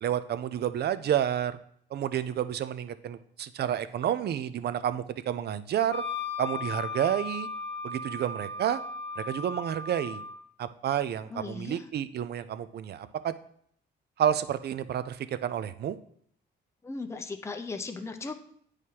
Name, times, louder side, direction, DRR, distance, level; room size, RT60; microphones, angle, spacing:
voice 1, 0.0-1.6 1.9-6.0 6.4-7.5 7.8-8.8 9.2-10.2 10.6-13.3 14.2-16.0, right 10 dB, 55° right, 14 dB, 0.5 m, -30 dB
Wind instrument woodwind instrument, 5.9-10.4, left 3 dB, 70° left, 0.8 m, -36 dB
voice 2, 11.3-11.9 16.8-18.4, left 3 dB, 15° left, 6 dB, 0.6 m, -37 dB
9.2 x 4.9 x 2.8 m, 0.65 s
cardioid pair, 90°, 20 cm